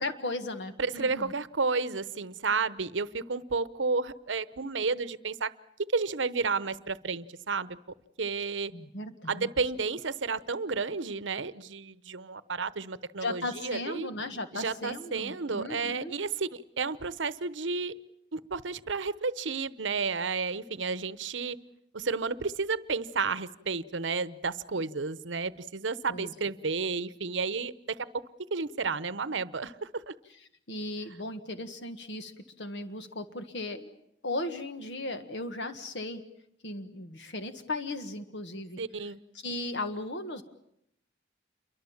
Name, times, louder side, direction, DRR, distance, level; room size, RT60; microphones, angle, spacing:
voice 1, 0.0-1.3 8.7-9.5 13.2-16.1 26.1-26.3 30.7-33.9 34.2-36.2 36.6-38.8 39.4-40.4, left 2 dB, 65° left, 8 dB, 1.6 m, -36 dB
voice 2, 0.8-5.5 5.9-7.8 8.2-8.7 9.3-14.1 14.5-17.9 18.3-21.6 21.9-28.0 28.5-30.1 38.8-39.2, right 4 dB, 80° right, 16 dB, 0.9 m, -32 dB
28.5 x 23.5 x 7.3 m, 0.76 s
head